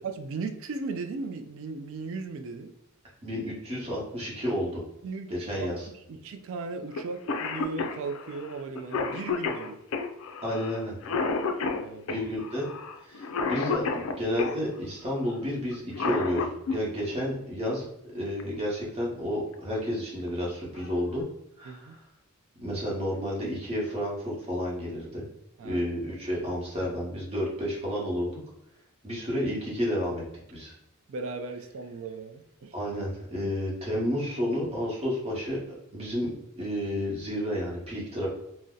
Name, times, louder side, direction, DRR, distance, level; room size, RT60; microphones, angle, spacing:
voice 1, 0.0-2.7 5.0-9.8 11.8-12.3 21.6-21.9 25.6-25.8 31.1-32.7, right 4 dB, 65° right, 6 dB, 0.3 m, -37 dB
voice 2, 3.2-4.8 5.3-5.8 10.4-10.9 12.1-12.7 13.0-17.9 18.1-21.2 21.6-22.0 22.6-25.2 25.6-28.3 29.0-30.2 30.5-30.7 32.7-35.6 35.9-38.3, equal, 30° right, -4 dB, 1.0 m, -31 dB
Cough, 7.0-7.1 7.3-14.6 15.7-16.8 18.4-18.5 19.5-19.8 20.3-20.4 20.8-21.2, left 4 dB, 65° left, 0.4 m, -31 dB
2.6 x 2.1 x 3.7 m, 0.84 s
head